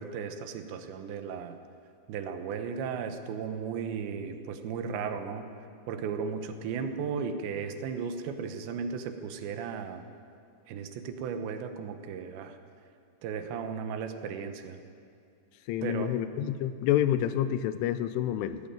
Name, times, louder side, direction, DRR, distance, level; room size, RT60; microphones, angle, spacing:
voice 1, 0.0-1.6 2.1-5.5 5.9-10.0 10.7-12.6 13.2-14.8 15.8-16.1, right 6 dB, 75° right, 8 dB, 3.1 m, -35 dB
voice 2, 15.7-18.6, left 11 dB, 90° left, 12 dB, 3.3 m, -28 dB
19.0 x 16.5 x 8.9 m, 2.5 s
omnidirectional pair, 5.5 m